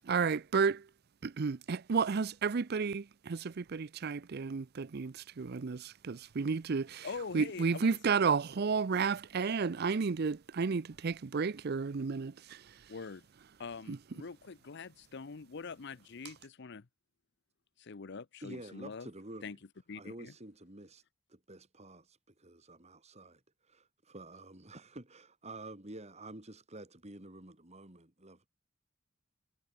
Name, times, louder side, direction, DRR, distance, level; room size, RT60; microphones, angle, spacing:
voice 1, 0.1-0.8 1.2-7.1 7.3-12.6, right 5 dB, 50° right, 0.5 m, -32 dB
voice 2, 7.0-8.0 10.6-10.8 12.9-13.2 13.6-16.9 17.8-19.1 19.4-19.6 19.9-20.3, left 4 dB, 60° left, 0.7 m, -44 dB
voice 3, 18.4-19.6 19.9-21.0 21.3-28.5, right 2 dB, 35° right, 3.1 m, -49 dB
head